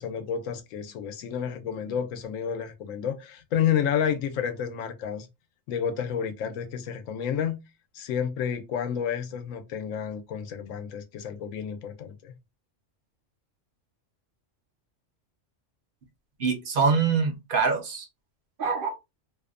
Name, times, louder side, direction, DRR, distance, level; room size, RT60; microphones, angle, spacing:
voice 1, 0.0-5.3 5.7-7.6 7.9-12.3, left 8 dB, 85° left, 1.0 m, -30 dB
voice 2, 16.4-18.1 18.6-18.9, right 5 dB, 55° right, 0.7 m, -24 dB
2.6 x 2.1 x 2.3 m
omnidirectional pair, 1.3 m